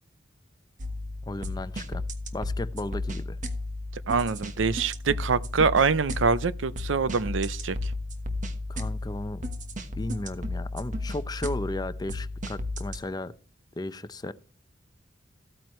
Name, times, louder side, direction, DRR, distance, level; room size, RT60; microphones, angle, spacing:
sound 1, 0.8-13.0, left 2 dB, 45° right, 1.2 m, -34 dB
voice 1, 1.2-2.0 2.3-3.4 8.7-9.4 10.0-13.3 13.8-14.3, left 1 dB, 20° left, 0.6 m, -35 dB
voice 2, 4.1-7.9, right 5 dB, 85° right, 0.6 m, -25 dB
14.5 x 8.9 x 3.1 m
head